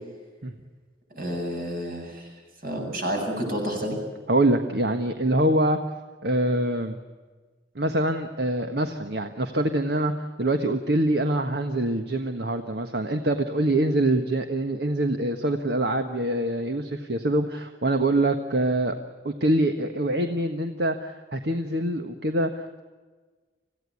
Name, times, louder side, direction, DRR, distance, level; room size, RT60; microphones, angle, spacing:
voice 1, 1.1-2.3 2.6-4.0, equal, 55° right, 2 dB, 7.9 m, -30 dB
voice 2, 4.3-5.8 6.2-7.0 7.7-19.0 19.2-22.6, right 1 dB, 70° right, 6 dB, 1.5 m, -24 dB
26.5 x 16.5 x 9.6 m, 1.4 s
head